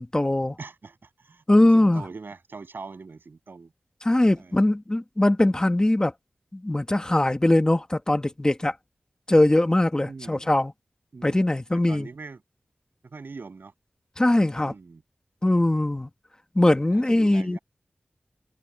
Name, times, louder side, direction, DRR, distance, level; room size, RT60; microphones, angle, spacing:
voice 1, 0.0-0.6 1.5-2.0 4.0-6.1 6.5-8.7 9.3-10.7 11.2-12.1 14.2-14.7 15.4-16.1 16.5-17.6, left 1 dB, 20° left, 1.7 m, -21 dB
voice 2, 0.6-3.7 4.4-4.7 10.1-10.5 11.1-12.4 13.0-13.7 14.6-15.0 16.9-17.6, right 4 dB, 75° right, 7.2 m, -42 dB
wide cardioid pair, 85°, 4 cm